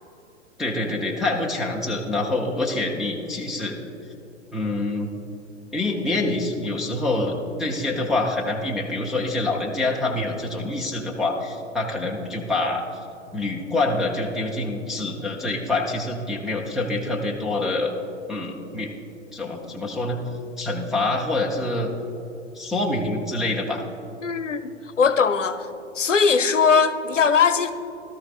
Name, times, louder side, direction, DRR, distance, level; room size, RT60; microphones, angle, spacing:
voice 1, 0.6-3.8 4.5-5.1 5.7-12.8 13.3-17.9 18.3-18.9 19.3-20.2 20.6-21.9 22.5-23.8, left 2 dB, ahead, -4 dB, 0.5 m, -26 dB
voice 2, 24.2-24.7 25.0-25.7 25.9-27.7, left 5 dB, 75° left, 11 dB, 0.8 m, -20 dB
17.5 x 13.0 x 2.4 m, 2.8 s
figure-of-eight pair, 105°, 37 cm